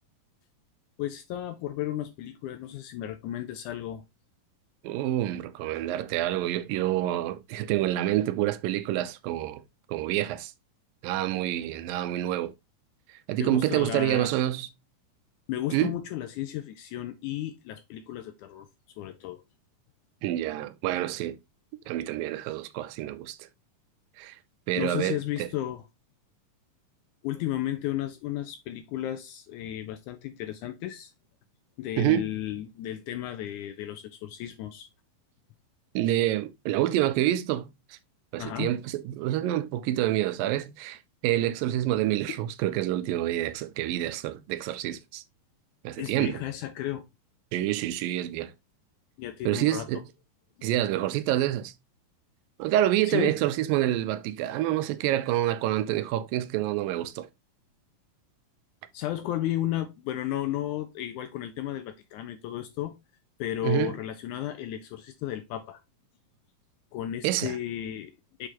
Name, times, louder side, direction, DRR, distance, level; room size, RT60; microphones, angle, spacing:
voice 1, 1.0-4.0 13.4-14.3 15.5-18.7 19.0-19.4 24.8-25.8 27.2-31.1 31.8-34.9 38.4-38.7 42.3-42.4 46.0-47.0 49.2-50.0 50.6-50.7 53.1-53.4 58.9-63.0 63.4-65.8 66.9-68.5, left 12 dB, 80° left, 1.8 m, -33 dB
voice 2, 4.8-9.6 9.9-10.5 11.0-12.5 13.3-14.7 15.7-16.0 20.2-21.4 21.9-23.4 24.2-24.4 24.7-25.5 32.0-32.3 36.0-37.7 38.3-45.2 45.8-46.4 47.5-48.5 49.5-50.0 50.6-51.7 52.6-57.3 63.6-63.9 67.2-67.5, right 13 dB, 85° right, 2.4 m, -27 dB
6.6 x 4.9 x 2.9 m
omnidirectional pair, 3.9 m